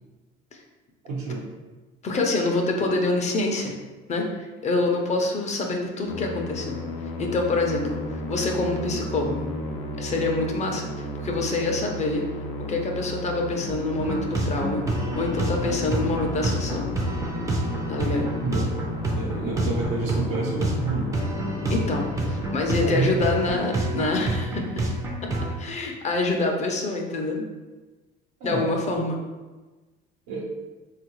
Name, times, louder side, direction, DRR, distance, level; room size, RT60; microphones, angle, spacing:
voice 1, 1.0-1.4 18.4-18.6 19.1-21.1 22.8-23.2 28.4-28.7 30.3-30.5, right 3 dB, 90° right, -3 dB, 1.0 m, -28 dB
voice 2, 2.0-3.7 4.1-6.8 7.2-9.5 10.0-12.2 12.7-16.9 17.9-18.3 21.7-24.7 25.6-27.5 28.4-29.2, left 2 dB, 35° left, 2 dB, 0.5 m, -26 dB
Musical instrument, 6.1-23.2, left 2 dB, 85° left, 0.5 m, -34 dB
sound 1, 14.0-25.5, right 2 dB, 15° right, 0.5 m, -28 dB
3.4 x 2.4 x 3.0 m, 1.2 s
cardioid pair, 105°, 21 cm